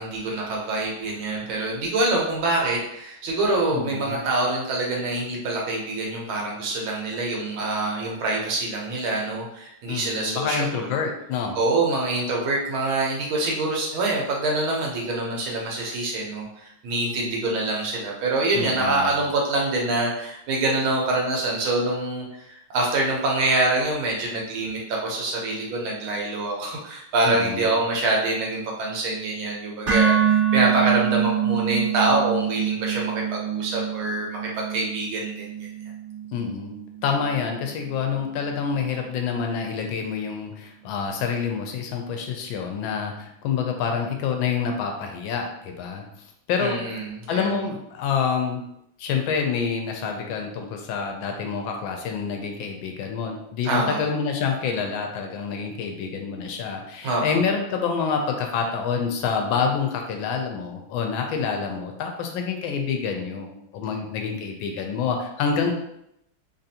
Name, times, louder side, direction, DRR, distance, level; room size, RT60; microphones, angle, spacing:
voice 1, 0.0-10.9 11.5-35.7 46.6-47.5 53.6-54.0 57.0-57.4, right 2 dB, 80° right, -2 dB, 1.7 m, -25 dB
voice 2, 3.7-4.2 9.9-11.6 18.5-19.2 27.2-27.7 36.3-36.7 37.0-46.1 46.5-46.8 47.3-48.6 49.0-63.5 63.7-65.7, left 6 dB, 80° left, 3 dB, 1.3 m, -27 dB
sound 1, 29.9-38.0, right 8 dB, 40° right, 1.4 m, -25 dB
3.7 x 2.5 x 2.7 m, 0.78 s
omnidirectional pair, 2.2 m